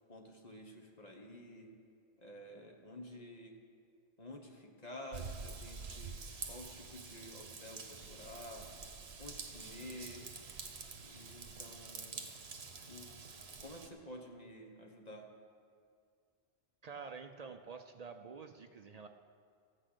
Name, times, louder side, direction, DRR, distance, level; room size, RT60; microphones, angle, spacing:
voice 1, 0.1-1.7 2.2-3.5 4.2-6.2 6.4-8.7 9.2-10.2 11.0-12.3 12.9-13.1 13.6-15.3, left 1 dB, 40° left, 1 dB, 1.3 m, -50 dB
Raindrop / Vehicle horn car horn honking / Trickle dribble, 5.1-13.9, right 5 dB, 80° right, 1.3 m, -47 dB
voice 2, 16.8-19.1, right 5 dB, 50° right, 7 dB, 0.5 m, -48 dB
15.0 x 6.3 x 8.0 m, 2.3 s
omnidirectional pair, 1.1 m